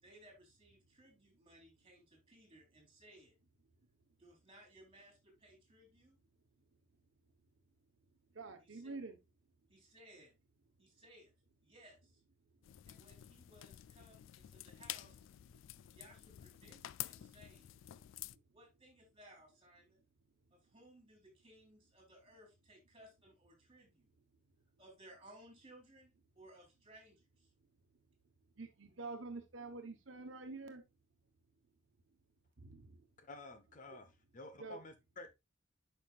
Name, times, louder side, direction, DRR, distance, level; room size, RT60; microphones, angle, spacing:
voice 1, 0.0-3.3 4.2-6.2 8.6-9.0 9.7-10.3 10.8-11.3 11.6-12.2 12.9-15.3 15.9-17.7 18.5-20.0 20.5-24.1 24.8-27.5, right 1 dB, 30° right, 3.6 m, -61 dB
voice 2, 8.3-9.2 28.6-30.8 32.6-33.0 34.6-34.8, right 3 dB, 75° right, 1.1 m, -47 dB
sound 1, 12.6-18.4, left 14 dB, 75° left, 0.3 m, -49 dB
voice 3, 33.2-34.1 34.3-35.3, left 2 dB, 40° left, 1.0 m, -51 dB
8.9 x 5.8 x 2.4 m
head